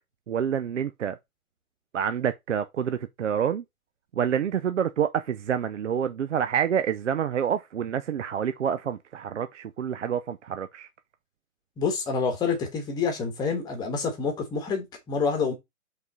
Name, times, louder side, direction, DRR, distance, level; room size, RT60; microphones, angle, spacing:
voice 1, 0.3-1.2 1.9-3.6 4.2-10.9, right 8 dB, 55° right, 0.7 m, -27 dB
voice 2, 11.8-15.5, left 5 dB, 10° left, 1.3 m, -27 dB
5.5 x 4.1 x 5.3 m
figure-of-eight pair, 140°, 44 cm